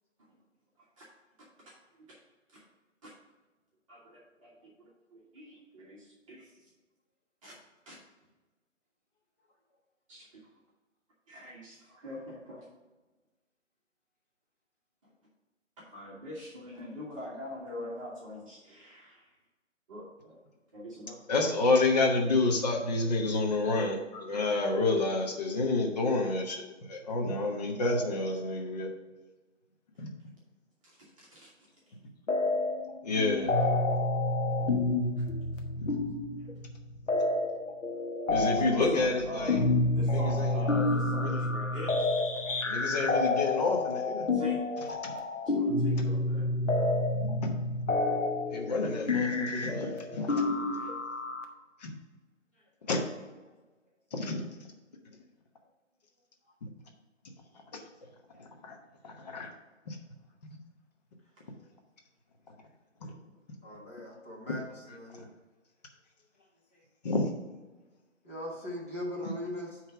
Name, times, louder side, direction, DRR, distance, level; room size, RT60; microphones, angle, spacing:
voice 1, 0.8-1.1 1.4-2.2 2.5-2.6 3.0-3.1 3.9-6.7 7.4-7.6 7.8-8.0 10.1-10.5 11.3-12.7 15.8-19.3 19.9-20.4 20.7-21.2 23.6-23.7 24.3-24.5 30.8-31.7 34.6-34.7 35.2-35.3 38.4-39.7 40.0-42.8 44.3-44.6 45.4-46.4, equal, 25° right, -6 dB, 1.4 m, -44 dB
voice 2, 21.3-28.9 30.0-30.1 33.0-33.5 35.8-35.9 38.3-39.6 40.1-40.6 41.1-41.4 42.6-44.3 45.0-45.1 47.4-47.5 48.5-50.4 50.7-50.9 51.8-51.9 52.9-53.1 54.1-54.4 57.7-57.8 58.4-58.8 59.0-59.5 59.9-60.0 63.0-63.1 64.9-65.0 67.0-67.3 69.2-69.3, left 3 dB, 35° left, 1 dB, 1.1 m, -29 dB
sound 1, 32.3-32.9 33.2-51.4, left 2 dB, 75° left, 1.2 m, -29 dB
voice 3, 50.5-50.9 63.6-64.6 64.9-65.3 68.2-69.7, left 1 dB, 10° left, -7 dB, 0.6 m, -40 dB
9.0 x 3.3 x 5.8 m, 1.2 s
figure-of-eight pair, 145°, 38 cm